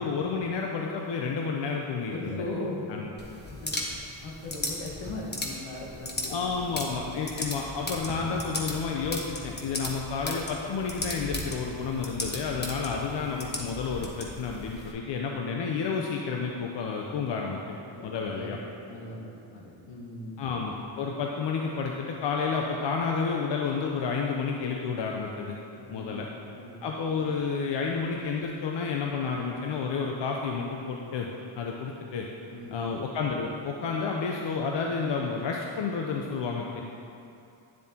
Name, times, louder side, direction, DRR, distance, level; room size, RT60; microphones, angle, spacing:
voice 1, 0.0-2.4 2.9-3.1 6.3-17.8 18.0-18.6 20.4-25.6 25.9-26.3 26.8-31.3 31.6-32.3 32.7-36.8, left 5 dB, 60° left, 0 dB, 0.8 m, -30 dB
voice 2, 2.1-2.9 3.4-3.7 4.2-6.3 6.6-6.7 7.0-7.4 17.9-20.4 25.8-26.3 26.5-26.8 32.5-32.9, left 2 dB, 80° left, -3 dB, 1.6 m, -39 dB
sound 1, 3.2-14.9, left 1 dB, 20° left, 1.3 m, -37 dB
10.0 x 7.1 x 2.9 m, 2.6 s
cardioid pair, 65°, 48 cm